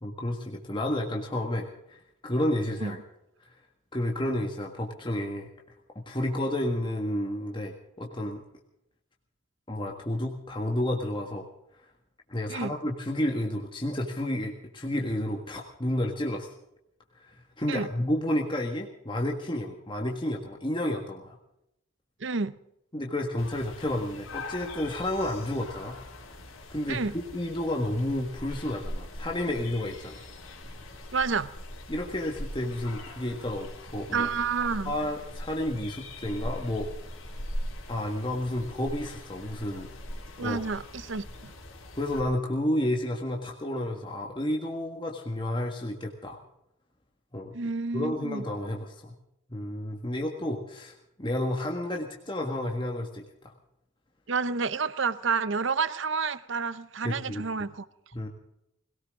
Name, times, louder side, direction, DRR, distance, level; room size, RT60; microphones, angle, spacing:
voice 1, 0.0-3.0 3.9-5.5 6.0-8.4 9.7-11.5 12.3-16.5 17.2-21.4 22.9-26.0 26.7-30.3 31.9-34.3 34.9-36.9 37.9-39.9 40.4-40.6 42.0-46.4 47.3-47.5 47.9-49.1 49.5-53.5 57.0-57.4 58.1-58.3, left 1 dB, 25° left, 1.6 m, -31 dB
voice 2, 22.2-22.6 26.9-27.1 31.1-31.5 34.1-34.9 40.4-41.5 47.5-48.4 54.3-57.9, right 5 dB, 60° right, 0.7 m, -29 dB
sound 1, 23.4-42.2, left 1 dB, 75° left, 3.9 m, -41 dB
21.5 x 17.5 x 3.7 m
head